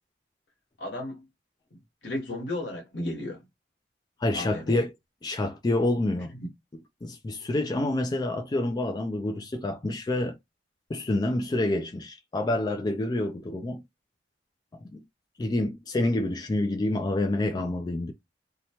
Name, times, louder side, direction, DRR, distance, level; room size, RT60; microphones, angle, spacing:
voice 1, 0.8-1.2 1.7-3.4 4.3-4.8 6.3-6.5 17.6-17.7, left 1 dB, 70° left, 1.3 m, -34 dB
voice 2, 4.2-4.9 5.2-6.3 7.0-10.4 10.9-13.8 14.9-15.0 15.4-18.1, left 2 dB, 25° left, 0.3 m, -27 dB
2.8 x 2.2 x 2.9 m
head